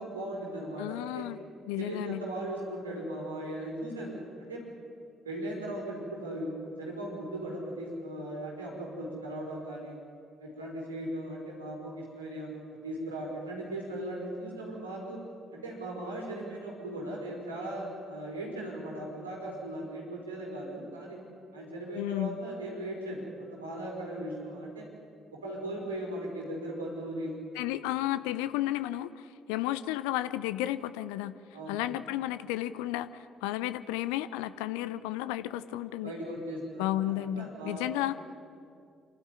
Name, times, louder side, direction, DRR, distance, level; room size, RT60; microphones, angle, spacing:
voice 1, 0.0-1.3 1.8-4.6 5.2-10.0 10.4-15.2 15.5-21.2 21.5-24.9 25.3-27.3 31.5-31.8 36.0-38.0, right 1 dB, 80° right, -3 dB, 5.0 m, -38 dB
voice 2, 0.8-1.4 1.7-2.2 22.0-22.4 27.5-31.3 31.7-36.1 36.8-38.1, left 14 dB, 70° left, 14 dB, 0.6 m, -33 dB
27.5 x 12.5 x 9.9 m, 2.4 s
figure-of-eight pair, 45°, 0 cm